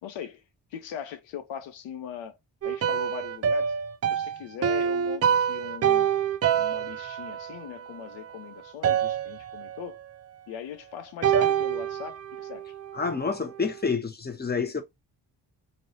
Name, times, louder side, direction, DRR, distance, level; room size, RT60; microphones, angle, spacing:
voice 1, 0.0-0.4 0.7-2.4 2.6-3.7 4.1-6.1 6.5-10.0 10.5-12.7, left 8 dB, 85° left, 0.6 m, -40 dB
sound 1, 2.6-8.4 8.8-10.0 11.2-13.4, right 8 dB, 35° right, 0.4 m, -27 dB
voice 2, 12.9-14.8, left 5 dB, 20° left, 0.8 m, -28 dB
3.0 x 2.7 x 2.7 m
supercardioid pair, 45°, 44 cm